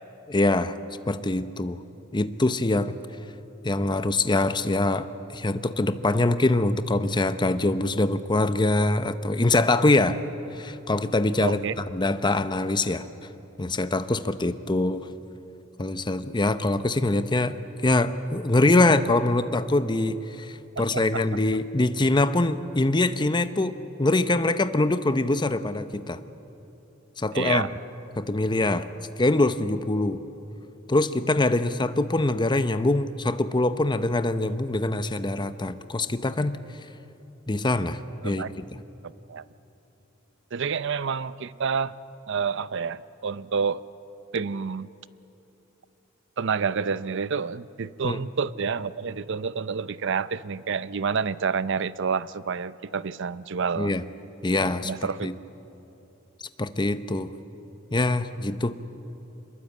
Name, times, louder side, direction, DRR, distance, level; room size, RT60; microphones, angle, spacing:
voice 1, 0.3-0.8 1.1-1.8 2.1-3.0 3.6-10.2 10.5-11.7 11.9-13.1 13.6-15.1 15.8-17.6 17.8-26.2 27.2-27.7 28.2-28.9 29.2-30.2 30.9-36.6 37.5-38.6 48.0-48.2 53.8-54.0 54.4-54.9 55.2-55.3 56.6-57.3 57.9-58.7, left 2 dB, 20° left, 11 dB, 0.8 m, -24 dB
voice 2, 11.4-11.7 20.8-21.2 27.3-27.7 38.2-38.5 39.3-39.4 40.5-41.9 42.3-43.8 44.3-44.9 46.4-54.0 54.8-55.3, right 5 dB, 65° right, 16 dB, 0.6 m, -28 dB
25.0 x 21.5 x 8.5 m, 3.0 s
head